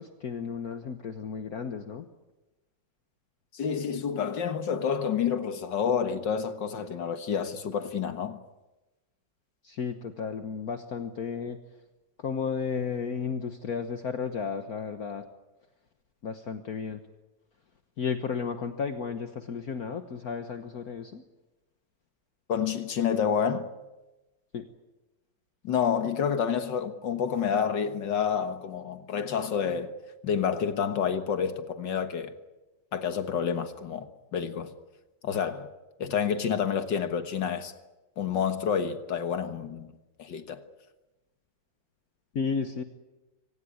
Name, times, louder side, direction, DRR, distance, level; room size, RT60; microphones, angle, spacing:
voice 1, 0.0-2.1 9.6-11.6 12.2-15.2 16.2-17.0 18.0-21.2 24.5-24.6 42.3-42.8, left 6 dB, 55° left, 1.6 m, -33 dB
voice 2, 3.5-8.4 22.5-23.7 25.6-29.9 30.2-32.3 32.9-34.7 35.2-35.7 36.0-37.7 38.2-39.9 40.2-40.6, left 7 dB, 70° left, 2.0 m, -29 dB
24.5 x 18.5 x 9.6 m
omnidirectional pair, 2.0 m